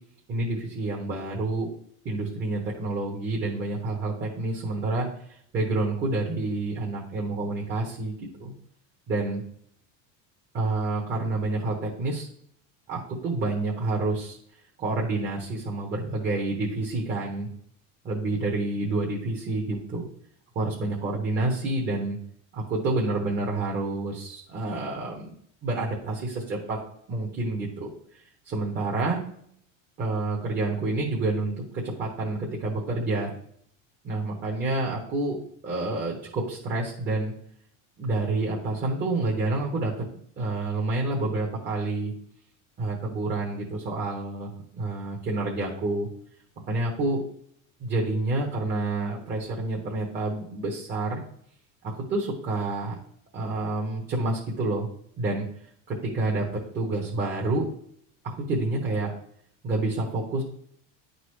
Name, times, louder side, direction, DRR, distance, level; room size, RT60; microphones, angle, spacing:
voice 1, 0.3-1.7 2.0-8.5 9.1-9.4 10.5-12.3 12.9-14.4 14.8-17.5 18.0-20.1 20.5-22.2 22.5-25.3 25.6-26.8 27.1-27.9 28.4-29.2 30.0-33.3 34.0-35.4 35.6-37.3 38.0-40.0 40.4-42.1 42.8-46.1 46.7-47.2 47.8-51.2 51.8-52.9 53.3-54.9 55.2-55.5 55.9-56.5 56.7-57.7 58.2-59.1 59.6-60.4, right 2 dB, 25° right, -3 dB, 1.3 m, -28 dB
10.5 x 4.1 x 3.2 m, 0.65 s
cardioid pair, 165°, 39 cm